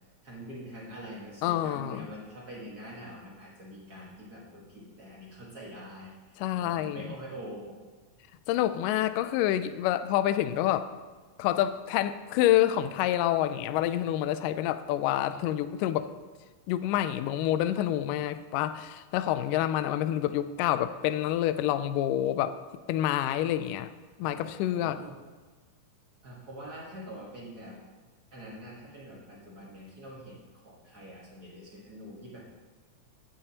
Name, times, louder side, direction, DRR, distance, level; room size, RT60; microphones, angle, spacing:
voice 1, 0.2-7.7 24.2-25.1 26.2-27.8 28.3-30.4 30.6-32.5, equal, 50° right, -5 dB, 1.1 m, -45 dB
voice 2, 1.4-2.1 6.4-7.2 8.5-10.9 11.4-16.1 16.7-22.6 22.9-23.9 24.2-25.0, left 12 dB, 90° left, 12 dB, 1.9 m, -27 dB
15.0 x 8.8 x 2.9 m, 1.4 s
omnidirectional pair, 4.3 m